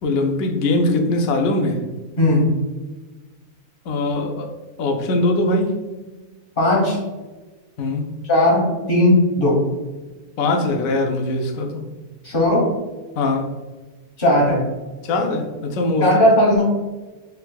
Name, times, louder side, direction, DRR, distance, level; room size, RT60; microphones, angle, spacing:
voice 1, 0.0-1.8 3.9-4.5 4.8-5.9 7.8-8.1 10.4-11.8 13.2-13.5 15.0-16.1, left 2 dB, 70° left, 4 dB, 1.0 m, -21 dB
voice 2, 2.2-2.5 6.6-7.0 8.3-9.6 12.2-12.7 14.2-14.6 16.0-16.6, left 1 dB, 35° left, -3 dB, 1.4 m, -16 dB
4.3 x 3.9 x 2.2 m, 1.2 s
omnidirectional pair, 1.6 m